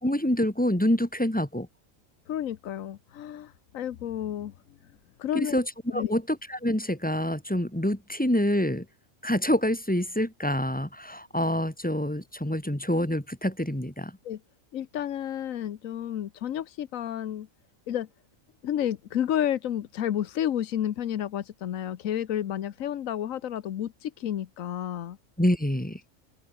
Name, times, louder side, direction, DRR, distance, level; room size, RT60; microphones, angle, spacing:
voice 1, 0.0-1.7 5.3-5.6 5.9-6.2 6.5-8.9 9.2-14.2 25.4-26.0, left 1 dB, 5° left, 2.1 m, -26 dB
voice 2, 2.3-4.5 5.2-5.6 5.9-6.1 14.2-14.4 14.7-17.5 17.9-18.1 18.6-25.2, left 10 dB, 85° left, 1.3 m, -31 dB
omnidirectional pair, 1.4 m